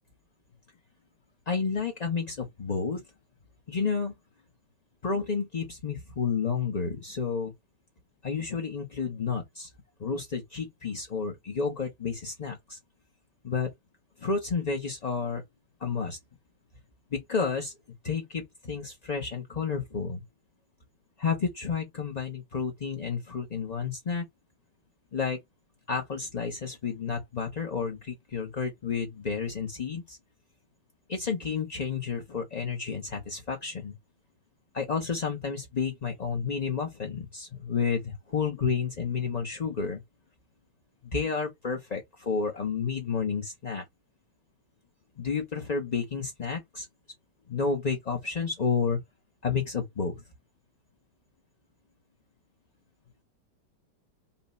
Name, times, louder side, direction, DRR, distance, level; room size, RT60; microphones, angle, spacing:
voice 1, 1.5-3.0 3.7-4.1 5.0-7.5 8.2-9.7 10.0-12.8 13.4-13.7 14.2-15.4 15.8-16.2 17.1-17.7 18.0-20.2 21.2-24.2 25.1-25.4 25.9-30.2 31.1-33.9 34.7-40.0 41.1-43.8 45.2-46.9 47.5-49.0 49.4-50.2, left 5 dB, 35° left, 0.6 m, -31 dB
5.6 x 2.3 x 4.1 m
omnidirectional pair, 1.9 m